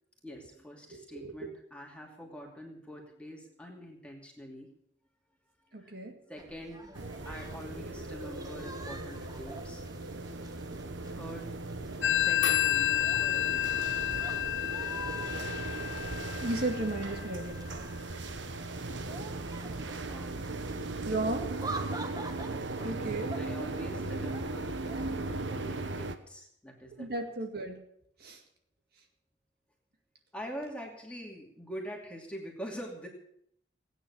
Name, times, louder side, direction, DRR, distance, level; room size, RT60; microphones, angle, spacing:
voice 1, 0.2-4.8 5.6-6.0 6.3-6.9 7.2-9.8 11.1-11.5 12.0-13.9 20.0-20.8 23.3-27.1 30.3-33.1, equal, 5° left, 0 dB, 2.7 m, -45 dB
voice 2, 0.9-1.3 5.7-6.2 16.0-17.8 21.1-21.5 22.8-23.4 27.0-27.8 28.2-28.4, right 2 dB, 55° right, 3 dB, 2.1 m, -35 dB
sound 1, 6.4-25.4, right 2 dB, 20° right, 1.3 m, -47 dB
sound 2, 7.0-26.2, right 2 dB, 75° right, 1.1 m, -38 dB
Telephone, 12.0-17.3, left 13 dB, 85° left, 0.9 m, -30 dB
17.5 x 9.4 x 7.1 m, 0.69 s
head